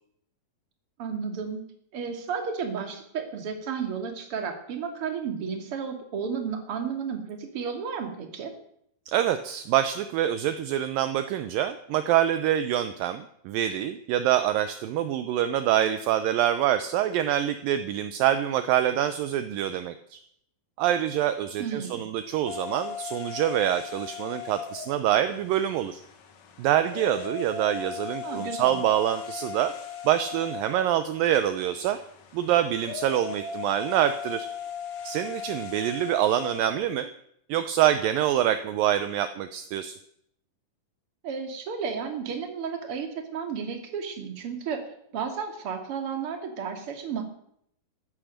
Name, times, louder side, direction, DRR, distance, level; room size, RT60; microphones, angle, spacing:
voice 1, 1.0-1.6 1.9-8.5 21.6-22.0 28.2-28.8 41.2-44.8 45.1-47.2, right 6 dB, 40° right, 4 dB, 2.8 m, -33 dB
voice 2, 9.1-20.2 20.8-26.0 26.6-29.7 30.1-32.0 32.3-34.5 35.0-37.1 37.5-40.0, right 11 dB, 75° right, 10 dB, 2.3 m, -25 dB
sound 1, 22.5-36.9, left 7 dB, 55° left, 2.4 m, -38 dB
15.0 x 12.5 x 6.5 m, 0.71 s
omnidirectional pair, 4.3 m